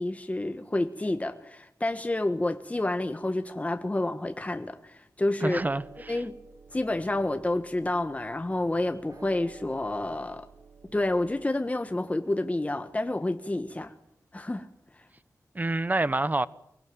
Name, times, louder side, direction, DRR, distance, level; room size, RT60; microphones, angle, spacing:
voice 1, 0.0-5.6 6.1-6.3 6.7-10.5 10.9-13.9 14.3-14.7, left 2 dB, 20° left, 1.4 m, -29 dB
voice 2, 5.4-6.2 15.5-16.5, right 2 dB, 25° right, 1.0 m, -27 dB
sound 1, 5.5-11.5, right 4 dB, 60° right, 3.2 m, -52 dB
24.0 x 19.0 x 9.3 m
wide cardioid pair, 75°, 6 cm